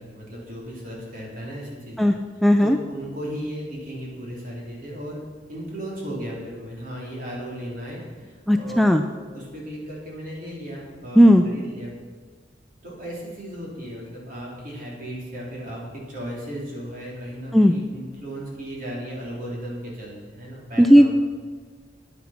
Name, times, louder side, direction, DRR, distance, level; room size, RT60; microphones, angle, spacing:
voice 1, 0.0-2.1 2.6-5.2 5.5-9.0 9.3-11.9 12.8-21.1, equal, 45° right, -3 dB, 3.5 m, -35 dB
voice 2, 2.4-2.8 8.5-9.0 11.2-11.4 17.5-17.7 20.8-21.1, equal, ahead, 6 dB, 0.3 m, -14 dB
10.0 x 9.6 x 5.9 m, 1.5 s
head